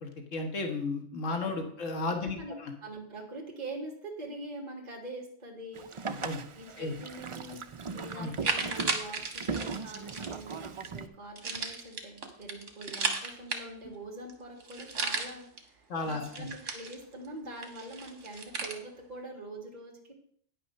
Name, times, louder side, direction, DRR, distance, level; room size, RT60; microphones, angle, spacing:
voice 1, 0.0-2.7 6.1-6.4 6.8-6.9 8.2-8.3 15.9-16.5, left 3 dB, 80° left, 4 dB, 1.7 m, -34 dB
voice 2, 2.8-5.9 6.6-7.6 7.9-20.1, right 1 dB, 35° right, -1 dB, 2.0 m, -44 dB
Boat Water vehicle, 5.7-11.1, right 5 dB, 50° right, 0.3 m, -39 dB
sound 1, 7.6-7.7 8.1-10.5 11.4-14.0 14.3-14.4 14.6-15.6 16.0-17.3 17.6-18.8, right 4 dB, 75° right, 1.7 m, -35 dB
9.8 x 5.6 x 6.4 m, 0.62 s
omnidirectional pair, 1.3 m